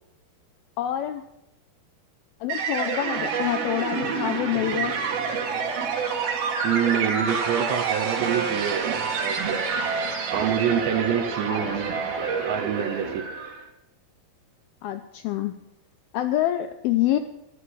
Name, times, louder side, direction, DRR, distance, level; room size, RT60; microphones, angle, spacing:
voice 1, 0.8-1.3 2.4-4.9 11.5-11.6 12.0-12.1 14.8-15.5 16.1-17.2, left 13 dB, 90° left, 8 dB, 2.2 m, -26 dB
sound 1, 2.5-13.6, right 5 dB, 65° right, 3.5 m, -28 dB
voice 2, 6.6-9.6 10.3-11.9 12.5-13.2, right 9 dB, 85° right, 4 dB, 3.1 m, -26 dB
13.0 x 11.5 x 5.4 m, 0.85 s
omnidirectional pair, 5.0 m